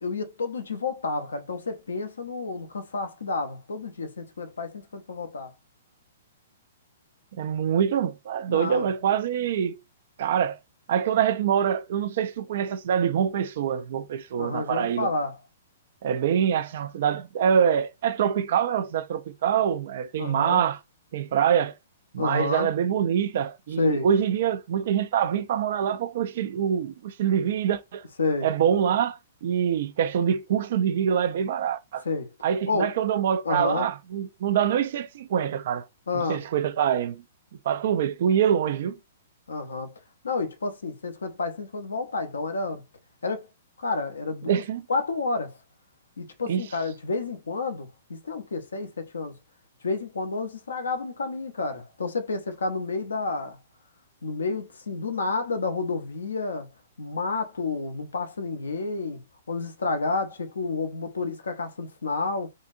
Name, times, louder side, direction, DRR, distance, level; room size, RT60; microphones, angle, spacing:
voice 1, 0.0-5.5 8.5-8.9 14.4-15.4 20.2-20.6 22.2-22.7 23.8-24.1 28.2-28.5 32.0-32.3 32.7-32.9 33.4-33.9 36.1-36.4 39.5-39.9 40.2-42.8 43.2-43.5 43.8-44.6 44.9-45.6 46.2-49.3 49.8-53.6 54.2-56.7 57.0-59.2 59.5-62.5, left 3 dB, 75° left, 0.8 m, -30 dB
voice 2, 7.4-9.8 10.2-10.6 10.9-15.1 16.0-20.8 21.1-21.7 22.1-28.0 28.4-32.0 32.4-35.9 36.3-37.2 37.7-39.0 44.5-44.8 46.5-46.7, right 8 dB, 55° right, 0.4 m, -25 dB
3.7 x 2.6 x 2.6 m
figure-of-eight pair, 115°, 0 cm